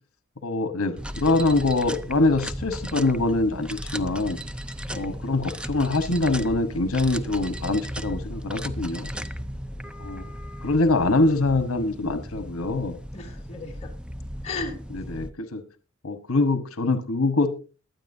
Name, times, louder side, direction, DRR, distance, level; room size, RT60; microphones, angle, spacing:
voice 1, 0.4-4.4 4.9-9.1 10.0-10.3 10.6-13.0 14.9-15.6 16.0-17.7, left 2 dB, 80° left, 9 dB, 1.1 m, -24 dB
sound 1, 1.0-15.3, equal, 5° right, 0.5 m, -36 dB
voice 2, 4.9-5.3 9.1-9.9 13.1-13.9 14.4-14.7, left 3 dB, 30° left, -1 dB, 3.0 m, -37 dB
22.0 x 9.2 x 2.7 m, 0.34 s
head